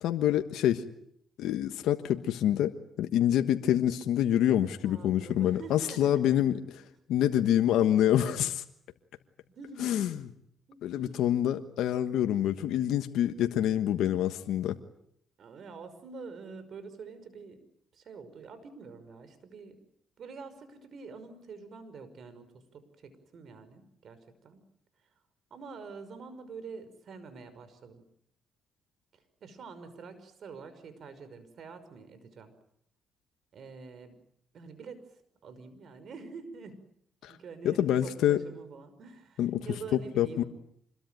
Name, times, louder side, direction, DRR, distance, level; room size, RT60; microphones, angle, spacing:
voice 1, 0.0-0.8 1.4-6.6 7.1-8.6 9.8-10.2 10.8-14.8 37.2-37.4 37.6-38.4 39.4-39.6 40.2-40.4, left 11 dB, 85° left, 7 dB, 1.3 m, -26 dB
voice 2, 4.8-6.5 9.6-10.1 10.7-11.2 15.4-17.6 17.9-19.8 20.2-24.6 25.5-28.0 29.1-32.5 33.5-34.2 34.5-36.8 37.3-40.5, right 4 dB, 60° right, 12 dB, 5.6 m, -46 dB
26.5 x 21.5 x 9.2 m, 0.72 s
cardioid pair, 90°, 0 cm